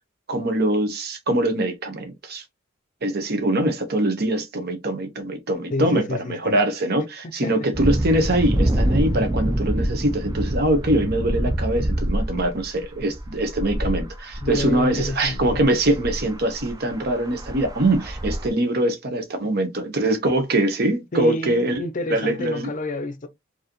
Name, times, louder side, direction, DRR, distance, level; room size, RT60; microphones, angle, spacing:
voice 1, 0.3-2.4 3.0-21.8 22.1-22.7, right 1 dB, 50° right, 1.0 m, -23 dB
voice 2, 5.7-6.6 7.4-7.5 8.3-8.4 14.4-15.6 21.1-23.3, left 1 dB, 40° left, 0.6 m, -29 dB
sound 1, 7.7-18.5, right 1 dB, 20° right, 0.5 m, -26 dB
4.6 x 2.8 x 3.0 m
head